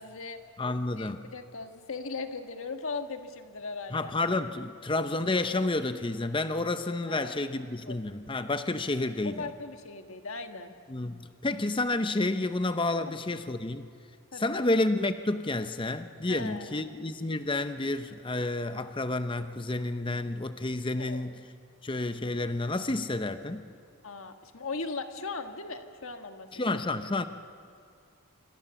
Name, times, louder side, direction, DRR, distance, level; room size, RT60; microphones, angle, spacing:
voice 1, 0.0-0.4 1.0-4.1 7.1-8.0 9.2-10.7 13.1-13.2 14.3-14.7 16.3-16.9 21.0-21.2 24.0-26.8, left 3 dB, 70° left, 7 dB, 1.5 m, -39 dB
voice 2, 0.6-1.2 3.9-9.5 10.9-13.9 14.3-21.4 21.8-23.6 26.5-27.3, left 2 dB, 25° left, 10 dB, 0.7 m, -30 dB
26.5 x 24.5 x 7.1 m, 2.4 s
head